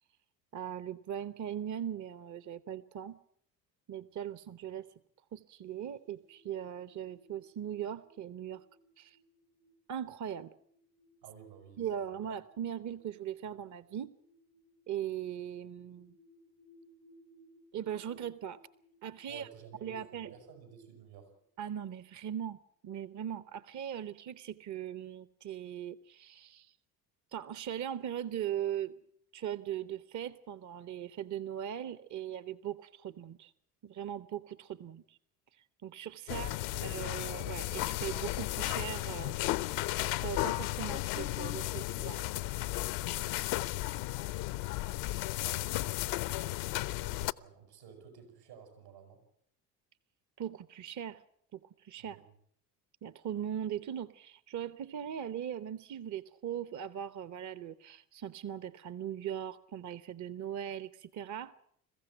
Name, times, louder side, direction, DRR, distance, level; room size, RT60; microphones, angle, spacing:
voice 1, 0.5-3.2 3.9-4.9 5.3-8.6 9.0-9.2 9.9-10.5 11.8-14.1 14.9-16.2 17.7-18.6 19.0-19.5 19.8-20.3 21.6-26.7 27.3-29.0 29.3-33.5 33.8-35.2 35.5-36.5 36.8-39.4 40.2-42.2 50.4-51.2 51.5-52.2 53.0-61.5, right 10 dB, 35° right, 15 dB, 0.9 m, -39 dB
sound 1, 5.6-21.9, equal, 65° right, 2.3 m, -66 dB
voice 2, 11.2-11.9 19.3-21.3 36.3-37.0 45.4-46.2 46.9-49.2 52.0-52.3, right 7 dB, 80° right, 5 dB, 7.2 m, -53 dB
sound 2, 36.3-47.3, left 18 dB, 60° left, 0.8 m, -34 dB
22.0 x 15.0 x 9.0 m, 0.67 s
hypercardioid pair, 60°, 49 cm